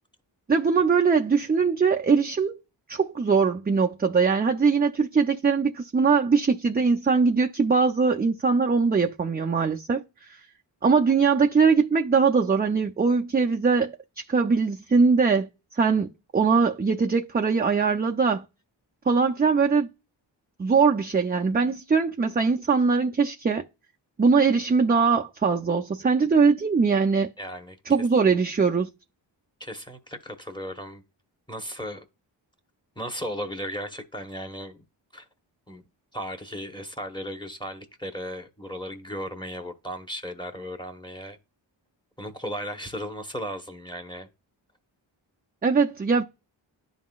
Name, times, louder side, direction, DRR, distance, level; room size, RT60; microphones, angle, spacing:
voice 1, 0.5-2.6 2.9-10.4 10.8-15.5 15.8-18.4 19.1-19.9 20.6-23.6 24.2-27.3 27.9-28.9 45.6-46.2, right 5 dB, 20° right, 0.4 m, -21 dB
voice 2, 27.4-27.8 29.6-31.0 31.5-32.0 33.0-34.8 35.1-35.2 35.7-35.8 36.1-41.4 42.2-44.3, equal, 10° left, 1.0 m, -36 dB
11.0 x 3.8 x 2.3 m
wide cardioid pair, 75°, 47 cm